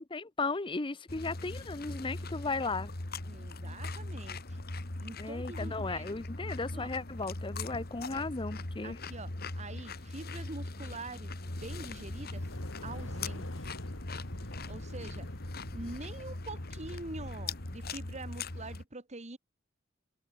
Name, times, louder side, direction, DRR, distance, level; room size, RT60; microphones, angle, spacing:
voice 1, 0.0-2.9 5.2-9.0, left 3 dB, 25° left, 0.8 m, -35 dB
sound 1, 1.1-18.8, left 2 dB, 50° left, 2.0 m, -40 dB
voice 2, 3.2-4.6 5.0-6.1 6.7-6.9 8.1-8.2 8.8-12.5 12.8-13.7 14.7-15.3 15.7-19.4, right 2 dB, 35° right, 1.6 m, -45 dB
sound 2, 11.3-18.3, left 1 dB, 80° left, 3.0 m, -46 dB
head